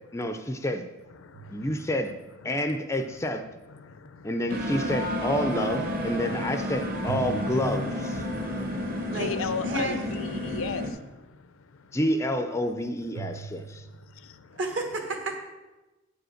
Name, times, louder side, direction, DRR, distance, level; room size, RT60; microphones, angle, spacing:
voice 1, 0.1-0.8 1.5-2.1 2.4-3.4 4.2-8.3 11.9-13.9, equal, 15° left, 0.4 m, -29 dB
voice 2, 1.1-2.2 2.4-2.7 3.4-4.5 4.9-5.0 6.2-6.4 7.4-7.5 7.8-12.0 13.5-14.6, left 5 dB, 80° left, 0.6 m, -39 dB
sound 1, 1.3-2.5 7.1-8.6 13.1-14.3, right 6 dB, 85° right, 0.5 m, -41 dB
sound 2, 4.5-10.9, left 1 dB, 45° right, 1.1 m, -31 dB
voice 3, 9.6-10.0 14.5-15.4, right 2 dB, 60° right, 1.3 m, -31 dB
8.3 x 5.1 x 6.3 m
head